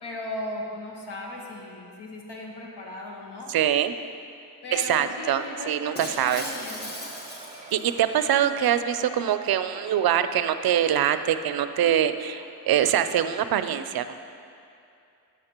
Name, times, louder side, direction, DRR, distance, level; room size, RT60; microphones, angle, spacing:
voice 1, 0.0-3.5 4.6-6.9, left 1 dB, 80° left, -1 dB, 1.4 m, -37 dB
voice 2, 3.5-3.9 4.7-6.4 7.7-14.1, right 10 dB, 65° right, 11 dB, 0.5 m, -24 dB
sound 1, 5.1-13.0, right 2 dB, 15° right, 0.9 m, -46 dB
Shatter, 5.9-8.3, left 1 dB, 25° left, 1.5 m, -38 dB
13.0 x 6.2 x 2.9 m, 2.6 s
cardioid pair, 70°, 40 cm